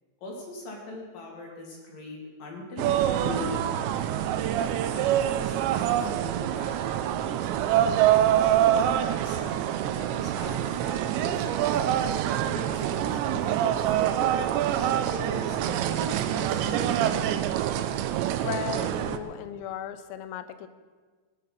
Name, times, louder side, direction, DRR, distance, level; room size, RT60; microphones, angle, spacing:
voice 1, 0.2-4.1 4.9-8.7 9.2-11.5 12.4-17.2, left 2 dB, 55° left, -1 dB, 4.1 m, -41 dB
sound 1, 2.8-19.2, right 11 dB, 85° right, 3.0 m, -25 dB
voice 2, 18.4-20.7, left 10 dB, 85° left, 12 dB, 3.1 m, -36 dB
18.0 x 11.0 x 5.7 m, 1.5 s
omnidirectional pair, 5.0 m